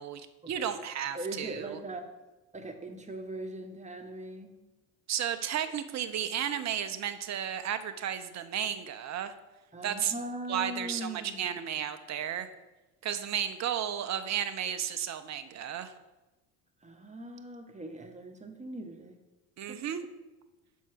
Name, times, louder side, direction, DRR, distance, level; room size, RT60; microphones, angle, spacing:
voice 1, 0.0-1.8 5.1-9.3 9.8-10.1 10.5-12.5 13.0-15.9 19.6-20.1, right 9 dB, 40° right, 11 dB, 0.7 m, -33 dB
voice 2, 1.1-2.0 2.5-4.5 9.7-11.7 16.8-19.2 19.7-19.8, right 1 dB, 15° right, 5 dB, 1.1 m, -40 dB
6.3 x 4.6 x 6.0 m, 1.1 s
hypercardioid pair, 65°, 44 cm